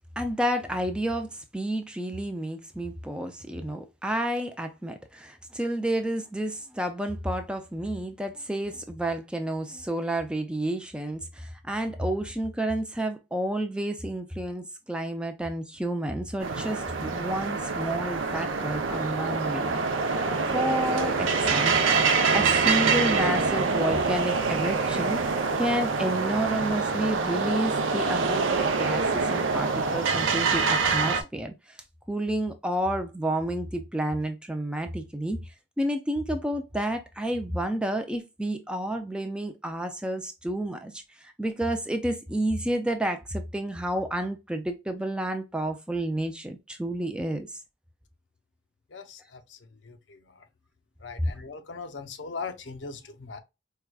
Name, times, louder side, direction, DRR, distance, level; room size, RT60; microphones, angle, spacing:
voice 1, 0.2-19.8 20.5-21.9 22.3-31.8 32.1-35.4 35.8-47.5, right 1 dB, 5° right, 0.3 m, -30 dB
sound 1, 16.4-31.2, right 4 dB, 80° right, 0.6 m, -25 dB
voice 2, 48.9-50.4 51.0-53.4, left 4 dB, 65° left, 0.6 m, -40 dB
4.6 x 2.2 x 2.2 m
head